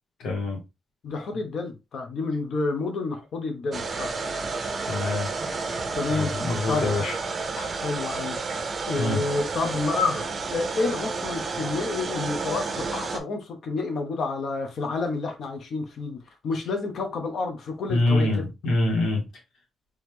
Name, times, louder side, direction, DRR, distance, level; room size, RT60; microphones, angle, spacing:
voice 1, 0.2-0.6 4.9-5.3 6.1-7.1 9.0-9.2 17.9-19.3, left 2 dB, 85° left, 1.9 m, -25 dB
voice 2, 1.0-4.1 5.9-6.3 6.7-7.1 7.6-8.4 8.9-18.3, left 3 dB, 55° left, 1.1 m, -29 dB
sound 1, 3.7-13.2, right 4 dB, 35° right, 0.6 m, -31 dB
4.0 x 3.1 x 3.2 m
wide cardioid pair, 165°, 0 cm